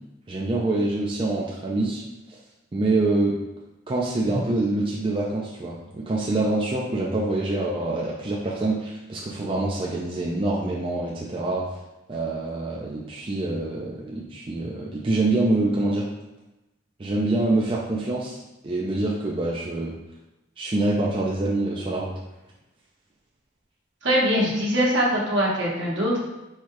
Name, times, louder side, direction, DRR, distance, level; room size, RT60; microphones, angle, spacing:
voice 1, 0.3-2.0 2.3-2.4 2.7-3.4 3.9-11.7 12.1-16.1 17.0-19.9 20.6-22.1, right 2 dB, 25° right, -4 dB, 0.4 m, -25 dB
voice 2, 24.0-26.2, equal, 70° right, -4 dB, 1.1 m, -22 dB
4.3 x 2.3 x 4.6 m, 0.98 s
head